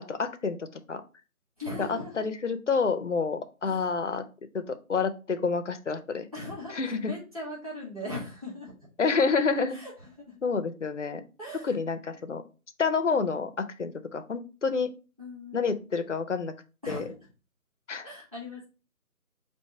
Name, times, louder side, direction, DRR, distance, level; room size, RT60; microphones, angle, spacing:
voice 1, 0.1-1.0 1.8-4.2 4.5-6.3 6.7-7.1 9.0-9.8 10.4-11.2 11.6-12.4 12.8-14.9 15.5-16.5 16.9-17.0 17.9-18.1, left 5 dB, 55° left, 10 dB, 0.5 m, -28 dB
voice 2, 1.6-2.3 3.6-3.9 6.3-8.7 9.7-10.4 11.4-11.8 15.2-15.7 16.8-17.2 18.0-18.7, left 1 dB, 25° right, -5 dB, 1.1 m, -39 dB
3.6 x 2.6 x 4.3 m, 0.33 s
figure-of-eight pair, 180°, 45 cm